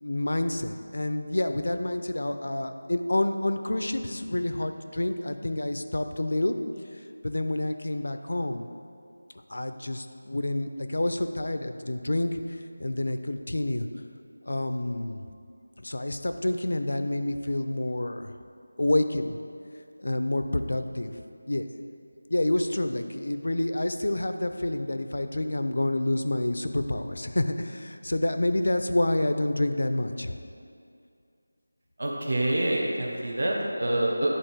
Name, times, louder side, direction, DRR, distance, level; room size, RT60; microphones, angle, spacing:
voice 1, 0.0-6.6 7.2-8.7 9.5-12.4 12.8-13.9 14.5-15.2 15.8-18.3 18.8-19.4 20.0-21.2 21.5-21.7 22.3-30.3, left 1 dB, 70° left, 8 dB, 0.5 m, -28 dB
voice 2, 32.0-34.4, right 1 dB, 50° right, -1 dB, 1.0 m, -26 dB
10.5 x 4.1 x 4.6 m, 2.4 s
figure-of-eight pair, 180°, 0 cm